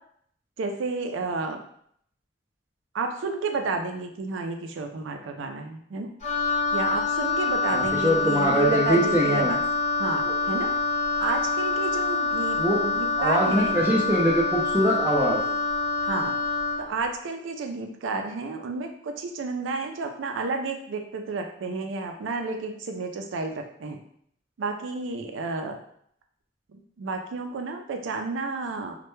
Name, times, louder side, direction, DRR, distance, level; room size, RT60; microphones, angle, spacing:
voice 1, 0.6-1.6 2.9-6.1 6.7-9.6 10.0-10.7 11.2-13.8 16.0-16.3 16.8-24.0 24.6-25.8 26.7-29.0, right 3 dB, 80° right, 5 dB, 0.4 m, -31 dB
Wind instrument woodwind instrument, 6.2-16.9, left 3 dB, 35° left, 0.8 m, -26 dB
voice 2, 7.7-9.5 12.6-12.8 13.2-15.4, equal, 10° right, -4 dB, 0.4 m, -23 dB
2.1 x 2.1 x 3.0 m, 0.66 s
head